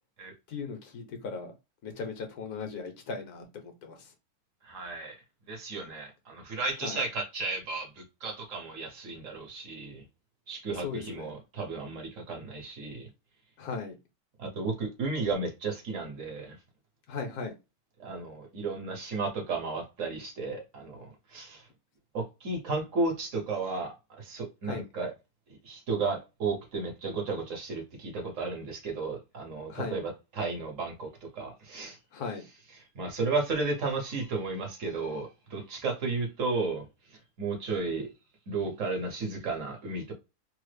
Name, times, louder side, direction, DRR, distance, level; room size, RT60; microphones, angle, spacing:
voice 1, 0.5-1.5 1.8-4.1 6.8-7.0 10.7-11.3 13.6-14.0 17.1-17.5 24.6-24.9 29.7-30.0 32.1-32.4, left 5 dB, 85° left, 1.4 m, -37 dB
voice 2, 4.6-5.2 5.5-10.0 10.5-13.1 14.4-16.6 18.0-21.6 22.1-25.1 25.6-31.1 31.3-32.0 32.9-36.8 37.4-38.1 38.5-40.1, right 3 dB, 60° right, 1.4 m, -33 dB
3.4 x 2.1 x 3.3 m
omnidirectional pair, 1.6 m